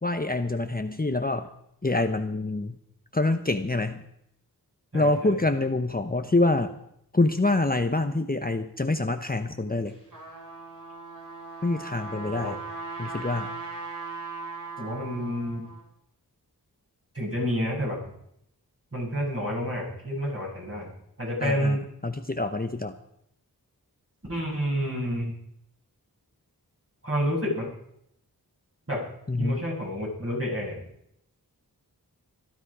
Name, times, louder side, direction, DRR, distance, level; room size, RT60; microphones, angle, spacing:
voice 1, 0.0-1.5 1.8-2.8 3.1-4.1 4.9-6.8 7.1-10.0 11.6-12.6 13.0-13.5 21.4-21.8 22.0-22.9 29.3-29.6, left 2 dB, 25° left, 7 dB, 1.0 m, -26 dB
voice 2, 4.9-5.4 12.1-12.5 14.8-15.6 17.1-18.0 18.9-21.8 24.3-25.3 27.0-27.7 28.9-29.0 29.4-30.9, equal, 35° right, -3 dB, 7.3 m, -29 dB
Trumpet, 9.9-15.8, right 3 dB, 55° right, 6.7 m, -38 dB
17.5 x 13.0 x 5.0 m, 0.74 s
wide cardioid pair, 50°, 39 cm